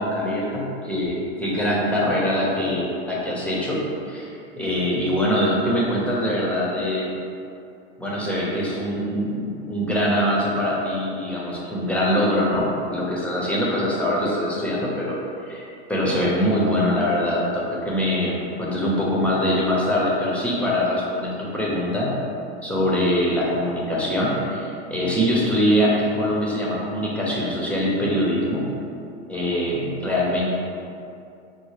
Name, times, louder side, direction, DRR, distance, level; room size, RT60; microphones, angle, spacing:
voice 1, 0.0-3.8 4.1-4.3 4.5-7.1 8.0-22.1 22.6-28.7 29.3-30.5, equal, 5° left, -5 dB, 0.7 m, -23 dB
5.2 x 2.1 x 3.1 m, 2.6 s
supercardioid pair, 115°, 33 cm